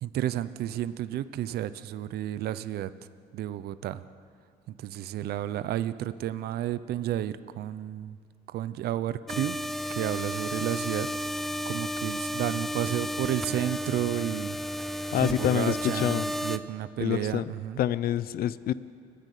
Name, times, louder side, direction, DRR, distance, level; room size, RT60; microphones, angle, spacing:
voice 1, 0.0-2.9 3.3-4.0 4.8-8.2 8.5-9.6 9.9-11.1 11.7-14.6 14.9-17.8, right 12 dB, 70° right, 14 dB, 0.8 m, -32 dB
sound 1, 9.3-16.6, equal, ahead, 0.8 m, -32 dB
voice 2, 15.1-16.3 17.0-17.5 17.8-18.7, left 11 dB, 60° left, 16 dB, 0.8 m, -27 dB
29.5 x 10.5 x 8.4 m, 2.2 s
cardioid pair, 110°, 17 cm